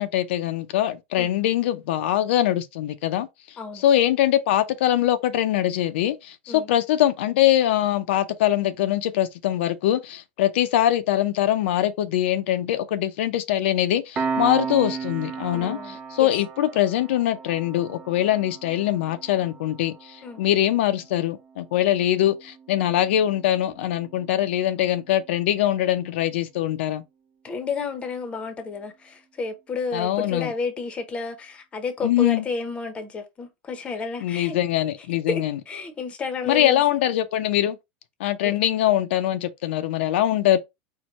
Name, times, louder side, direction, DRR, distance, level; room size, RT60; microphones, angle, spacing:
voice 1, 0.0-3.3 3.7-27.0 29.9-30.5 32.0-32.5 34.2-35.6 36.4-37.8 38.2-40.6, left 12 dB, 75° left, 0.5 m, -23 dB
Piano, 14.1-25.2, right 5 dB, 20° right, 0.4 m, -36 dB
voice 2, 15.5-16.3 20.2-20.4 27.4-34.6 35.3-37.1 38.4-38.5, left 4 dB, 20° left, 0.7 m, -31 dB
4.5 x 2.2 x 4.0 m
supercardioid pair, 150°, 6 cm